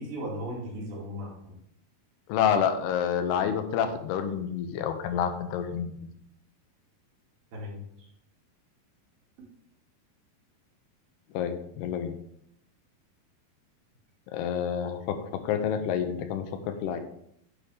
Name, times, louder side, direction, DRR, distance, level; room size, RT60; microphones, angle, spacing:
voice 1, 0.0-1.6 7.5-8.1, equal, 65° right, -3 dB, 4.1 m, -37 dB
voice 2, 2.3-6.0 11.3-12.2 14.3-17.0, left 8 dB, 85° left, 8 dB, 2.9 m, -28 dB
9.9 x 7.4 x 3.5 m, 0.71 s
omnidirectional pair, 4.7 m